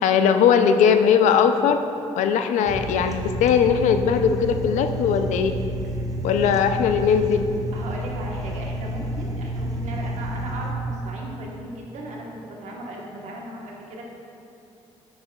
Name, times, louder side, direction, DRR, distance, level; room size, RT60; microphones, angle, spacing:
voice 1, 0.0-1.8 2.2-5.5 6.2-7.4, left 7 dB, 80° left, 8 dB, 0.4 m, -19 dB
sound 1, 2.7-10.7, right 1 dB, 30° right, 0.7 m, -30 dB
voice 2, 7.7-14.0, right 1 dB, 70° right, -2 dB, 1.2 m, -37 dB
8.5 x 5.7 x 2.3 m, 2.6 s
cardioid pair, 80°, 12 cm